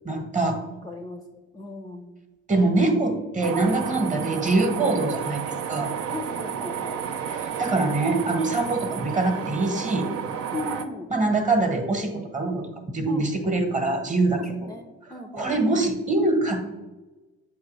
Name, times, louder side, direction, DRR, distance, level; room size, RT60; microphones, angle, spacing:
voice 1, 0.0-0.6 2.5-5.9 7.3-10.1 11.1-14.7 15.3-16.7, right 2 dB, 20° right, 5 dB, 1.2 m, -24 dB
voice 2, 0.8-1.2 1.5-2.2 4.2-4.4 6.1-7.0 10.5-11.1 13.1-13.3 14.3-15.7, left 3 dB, 10° left, 3 dB, 0.6 m, -37 dB
sound 1, 3.4-10.9, right 8 dB, 45° right, 0.6 m, -31 dB
8.0 x 2.7 x 5.4 m, 1.1 s
figure-of-eight pair, 45°, 35 cm